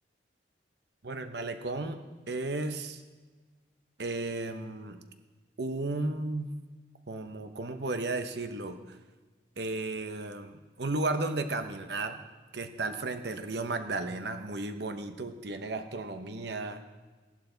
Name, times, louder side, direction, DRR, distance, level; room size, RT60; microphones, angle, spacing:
voice 1, 1.0-2.0 2.3-3.0 4.0-5.0 5.6-6.5 7.1-9.0 9.6-12.2 12.5-16.8, right 2 dB, 60° right, 8 dB, 0.9 m, -34 dB
16.5 x 11.5 x 3.9 m, 1.3 s
head